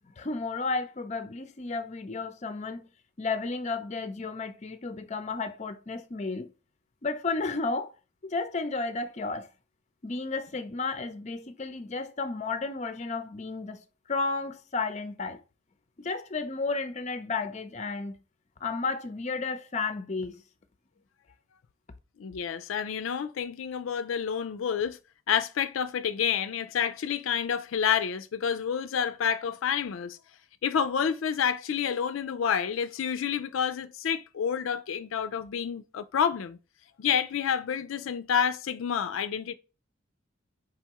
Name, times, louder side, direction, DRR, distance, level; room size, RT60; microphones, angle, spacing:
voice 1, 0.2-2.9 3.2-6.5 7.0-7.9 8.2-9.5 10.0-13.8 14.1-15.4 16.0-18.2 18.6-20.4, left 3 dB, 35° left, 0.5 m, -32 dB
voice 2, 22.2-25.0 25.3-30.2 30.6-36.6 37.0-39.5, left 7 dB, 90° left, 0.4 m, -29 dB
4.8 x 3.5 x 2.9 m
head